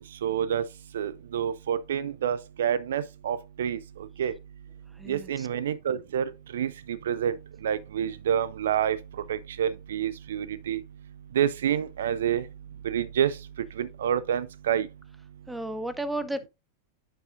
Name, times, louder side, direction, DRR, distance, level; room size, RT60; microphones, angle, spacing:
voice 1, 0.2-0.6 0.9-3.8 4.2-4.3 5.1-7.4 7.6-9.0 9.3-10.8 11.3-12.4 12.8-13.4 13.8-14.9, right 9 dB, 60° right, 0.3 m, -28 dB
voice 2, 5.0-5.5 15.5-16.5, right 1 dB, 5° right, 0.5 m, -33 dB
8.3 x 5.9 x 2.5 m
figure-of-eight pair, 90°, 0 cm